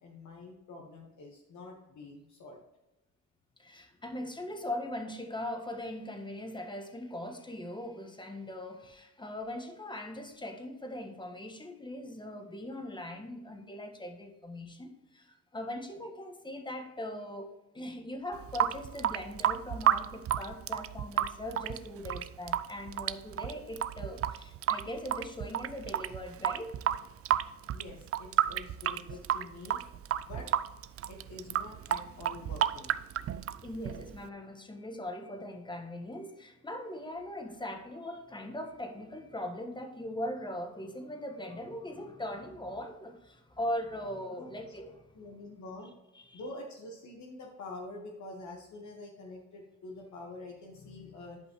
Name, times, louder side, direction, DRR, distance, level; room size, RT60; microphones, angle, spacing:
voice 1, 0.0-2.6 27.7-29.8 30.2-30.5 31.1-32.9 44.4-44.5 45.1-45.9 46.3-51.4, left 2 dB, 70° left, 0 dB, 1.5 m, -46 dB
voice 2, 3.6-26.7 33.6-45.0 46.1-46.4, left 1 dB, 15° left, 5 dB, 1.5 m, -40 dB
Water tap faucet / Sink (filling or washing) / Drip, 18.3-34.3, right 11 dB, 50° right, 0.5 m, -32 dB
11.5 x 5.3 x 3.1 m, 0.96 s
cardioid pair, 90°, 30 cm